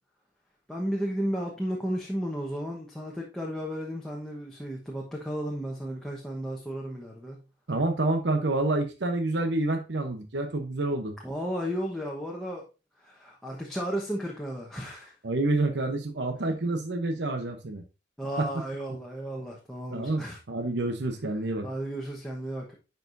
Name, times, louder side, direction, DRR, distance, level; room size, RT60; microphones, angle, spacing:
voice 1, 0.7-7.4 11.2-12.6 13.0-15.1 18.2-20.4 21.6-22.8, equal, 5° left, 1.1 m, -34 dB
voice 2, 7.7-11.2 15.2-17.8 18.4-18.5 19.9-21.7, right 2 dB, 70° right, 0.9 m, -28 dB
10.5 x 4.8 x 2.6 m
head